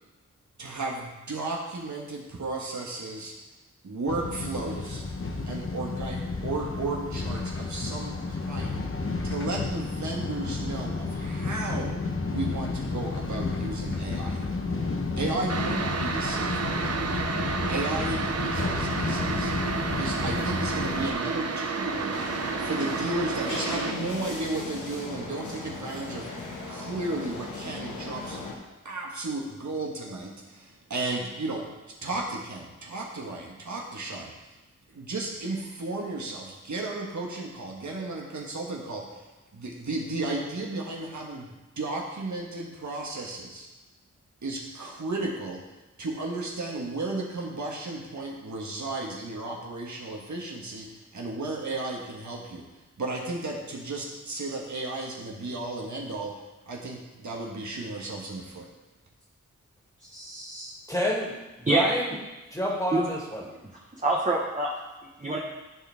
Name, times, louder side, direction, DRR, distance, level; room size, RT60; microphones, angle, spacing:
voice 1, 0.6-3.3 3.8-5.0 5.4-8.9 9.2-12.0 12.3-14.4 15.2-17.0 17.7-19.5 20.0-22.3 22.6-28.5 28.8-31.7 32.0-34.5 34.9-43.7 44.4-45.6 46.0-52.7 53.0-58.7, right 2 dB, 75° right, -2 dB, 1.6 m, -34 dB
sound 1, 4.1-21.1, left 3 dB, 45° left, 1.0 m, -31 dB
sound 2, 15.5-23.9, right 4 dB, 55° right, 0.7 m, -30 dB
sound 3, 22.1-28.6, left 2 dB, 85° left, 1.4 m, -37 dB
voice 2, 60.0-60.7 61.7-61.9 62.9-63.0 64.0-64.7 65.2-65.4, right 2 dB, 25° right, -4 dB, 1.2 m, -26 dB
voice 3, 60.9-62.2 62.5-63.4, equal, 10° left, -3 dB, 2.2 m, -29 dB
13.0 x 4.4 x 3.5 m, 1.1 s
wide cardioid pair, 60°, 30 cm